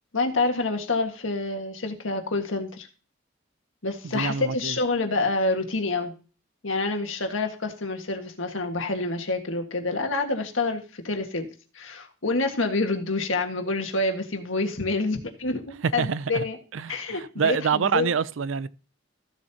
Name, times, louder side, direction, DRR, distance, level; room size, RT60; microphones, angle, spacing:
voice 1, 0.1-2.9 3.8-6.1 6.6-11.5 11.7-16.6 16.9-18.1, left 3 dB, 85° left, 1.7 m, -27 dB
voice 2, 4.1-4.8 16.0-16.4 16.7-18.7, right 6 dB, 80° right, 0.5 m, -26 dB
14.5 x 7.4 x 2.8 m
head